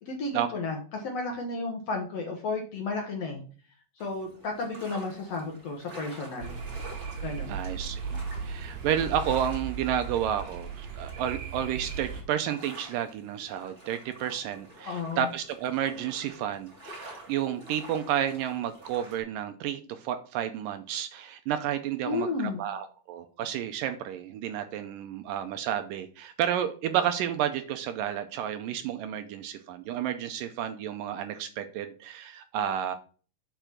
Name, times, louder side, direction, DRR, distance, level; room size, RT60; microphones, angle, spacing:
voice 1, 0.0-3.4 4.0-6.6 7.2-7.5 14.8-15.3 22.0-22.6, left 3 dB, 60° left, 2 dB, 1.7 m, -33 dB
sound 1, 4.0-19.2, right 1 dB, 15° right, 3.8 m, -49 dB
sound 2, 6.4-12.2, right 5 dB, 65° right, 3.6 m, -37 dB
voice 2, 7.5-32.9, right 10 dB, 80° right, 8 dB, 2.0 m, -31 dB
6.9 x 5.5 x 5.9 m, 0.40 s
omnidirectional pair, 4.5 m